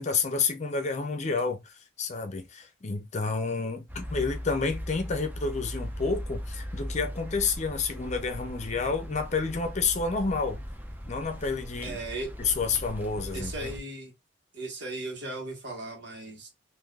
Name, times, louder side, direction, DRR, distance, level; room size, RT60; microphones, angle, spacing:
voice 1, 0.0-10.6 11.1-12.0 12.4-13.7, left 4 dB, 40° left, 0.6 m, -30 dB
sound 1, 3.9-13.8, equal, 10° right, 0.5 m, -38 dB
voice 2, 11.8-12.3 13.3-14.1 14.5-16.5, right 2 dB, 70° right, 1.4 m, -37 dB
3.7 x 2.6 x 2.4 m
head